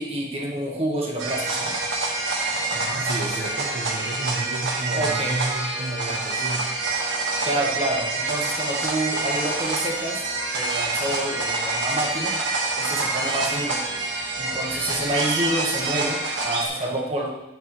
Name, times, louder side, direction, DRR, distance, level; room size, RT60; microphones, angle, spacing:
voice 1, 0.0-1.8 4.8-5.4 7.4-10.2 10.5-12.4 12.8-13.8 14.4-16.2 16.4-17.3, right 1 dB, 30° right, -2 dB, 1.3 m, -28 dB
sound 1, 1.2-16.7, right 3 dB, 65° right, 1.4 m, -27 dB
voice 2, 2.7-6.8, right 2 dB, 50° right, -3 dB, 0.9 m, -31 dB
9.1 x 8.2 x 3.1 m, 0.98 s
head